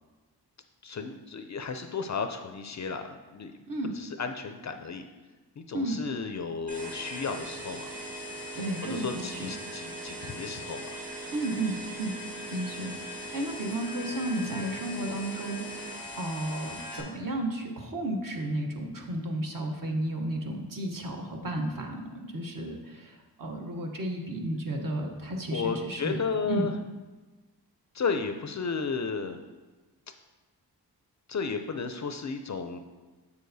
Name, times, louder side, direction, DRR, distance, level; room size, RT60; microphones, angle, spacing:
voice 1, 0.8-3.5 4.0-5.0 5.6-7.9 8.8-10.9 25.5-26.7 27.9-29.4 31.3-32.8, left 5 dB, 45° left, 7 dB, 0.4 m, -33 dB
sound 1, 6.7-17.0, equal, 20° right, 1.3 m, -39 dB
voice 2, 8.5-9.5 11.3-12.1 12.5-26.7, right 1 dB, 50° right, 1 dB, 1.0 m, -33 dB
7.0 x 6.5 x 2.7 m, 1.3 s
wide cardioid pair, 90°, 42 cm